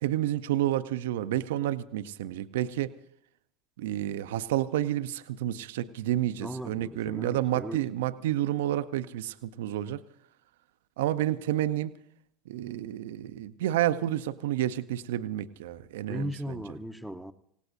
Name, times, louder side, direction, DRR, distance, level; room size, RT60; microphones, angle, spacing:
voice 1, 0.0-2.9 3.8-10.0 11.0-11.9 12.5-16.6, right 13 dB, 65° right, 13 dB, 0.6 m, -30 dB
voice 2, 6.4-7.8 16.1-17.3, equal, ahead, 10 dB, 0.8 m, -37 dB
27.0 x 17.5 x 2.6 m, 0.70 s
figure-of-eight pair, 75°, 0 cm